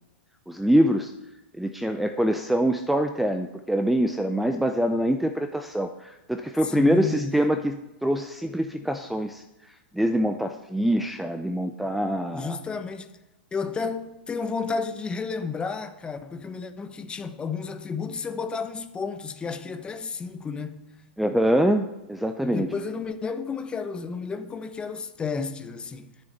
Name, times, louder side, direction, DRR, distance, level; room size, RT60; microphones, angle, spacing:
voice 1, 0.5-1.1 1.6-9.4 9.9-12.6 21.2-22.7, equal, ahead, 0.6 m, -24 dB
voice 2, 6.6-7.4 12.3-13.1 13.5-20.8 22.4-26.1, left 5 dB, 15° left, 1.1 m, -32 dB
9.9 x 7.0 x 8.7 m
hypercardioid pair, 105°, 6 cm